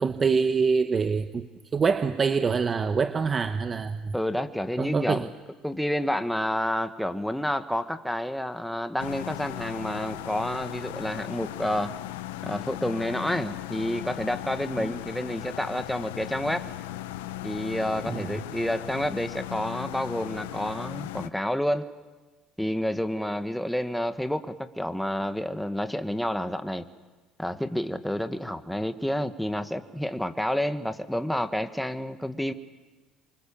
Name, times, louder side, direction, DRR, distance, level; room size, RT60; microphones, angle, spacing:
voice 1, 0.0-4.1 4.8-5.3 14.7-14.9 18.1-18.4, right 5 dB, 35° right, 9 dB, 1.1 m, -25 dB
voice 2, 4.1-5.3 5.6-11.9 12.4-16.7 17.4-21.8 22.6-26.8 27.4-32.5, equal, 5° left, 9 dB, 1.6 m, -29 dB
sound 1, 9.0-21.3, left 15 dB, 90° left, 0.9 m, -37 dB
27.5 x 24.5 x 7.3 m, 1.3 s
supercardioid pair, 75°, 0 cm